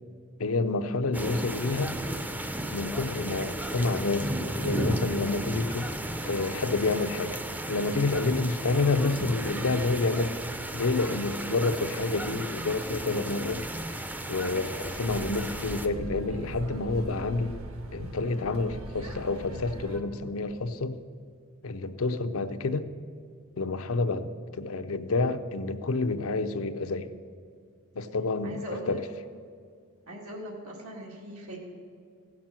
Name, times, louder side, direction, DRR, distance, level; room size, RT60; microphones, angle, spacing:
voice 1, 0.4-1.9 2.7-6.0 6.2-7.4 7.7-10.3 10.7-13.7 14.3-17.6 17.9-21.0 21.6-22.9 23.6-27.1 27.9-29.0, left 3 dB, 75° left, 9 dB, 0.6 m, -29 dB
sound 1, 1.1-15.9, right 1 dB, 10° right, 0.5 m, -34 dB
sound 2, 14.8-20.0, right 1 dB, 70° right, 1.3 m, -40 dB
voice 2, 28.4-29.0 30.1-31.6, equal, 90° right, -2 dB, 2.0 m, -39 dB
15.5 x 6.0 x 7.5 m, 2.1 s
head